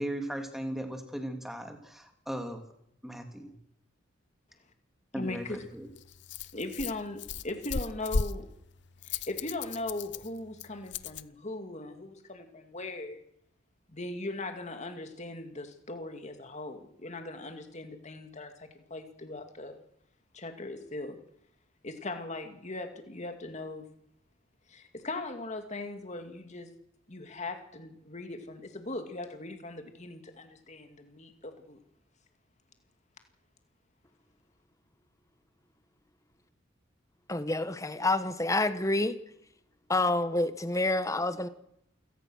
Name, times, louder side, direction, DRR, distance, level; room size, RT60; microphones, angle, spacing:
voice 1, 0.0-2.6 3.0-3.5 5.1-5.9, right 1 dB, ahead, 4 dB, 2.9 m, -37 dB
Rattle, 5.2-11.3, left 4 dB, 60° left, 0.8 m, -37 dB
voice 2, 5.2-5.6 6.5-8.5 9.0-13.2 13.9-19.8 20.3-21.2 21.8-23.9 24.7-26.7 27.1-31.8, left 2 dB, 35° left, 6 dB, 2.4 m, -39 dB
voice 3, 37.3-39.2 39.9-41.5, left 2 dB, 15° left, 11 dB, 1.2 m, -28 dB
28.0 x 18.0 x 6.5 m, 0.78 s
head